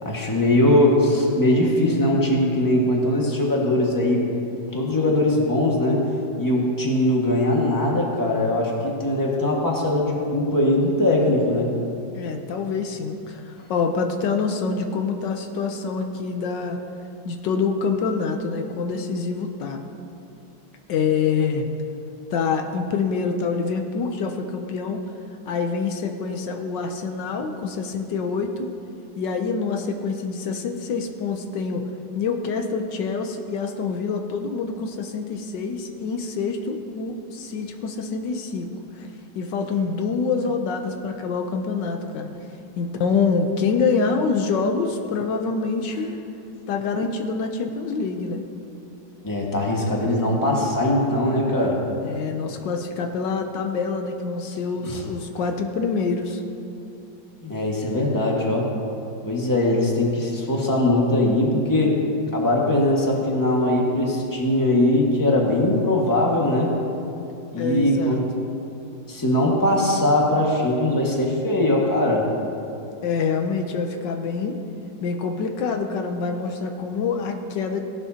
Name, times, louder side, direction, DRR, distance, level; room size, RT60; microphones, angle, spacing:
voice 1, 0.0-4.3 4.7-6.1 6.4-11.7 49.2-51.8 54.8-55.0 57.4-58.7 59.2-62.0 62.3-66.7 67.5-68.2 69.1-72.3, left 1 dB, 10° left, -3 dB, 1.5 m, -21 dB
voice 2, 12.1-16.8 17.2-19.8 20.9-21.7 22.3-25.0 25.5-28.7 29.2-31.9 32.2-39.1 39.3-42.3 42.8-46.2 46.7-48.4 52.0-56.4 67.6-68.2 73.0-74.6 75.0-77.8, left 5 dB, 75° left, 4 dB, 1.4 m, -26 dB
17.5 x 11.5 x 2.8 m, 2.7 s
omnidirectional pair, 1.9 m